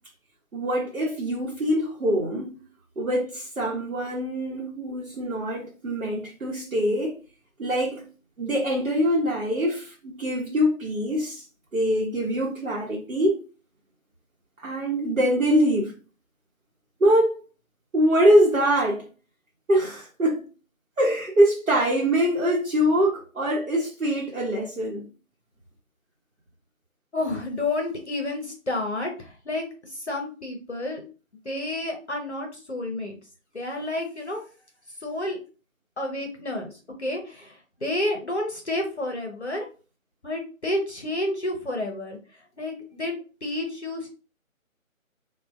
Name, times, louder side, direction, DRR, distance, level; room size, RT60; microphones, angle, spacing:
voice 1, 0.5-2.6 3.0-7.2 7.6-8.1 8.4-11.4 11.7-13.4 14.6-16.0 17.0-17.4 17.9-19.1 19.7-20.5 21.0-25.0, equal, 70° right, 0.9 m, -23 dB
voice 2, 27.1-29.7 30.1-31.0 31.5-33.2 33.5-34.4 35.0-35.4 36.0-36.7 37.0-37.5 37.8-39.7 40.2-42.2 42.6-43.1 43.4-44.1, left 2 dB, 55° left, 0.6 m, -30 dB
3.3 x 2.2 x 2.4 m
figure-of-eight pair, 160°, 41 cm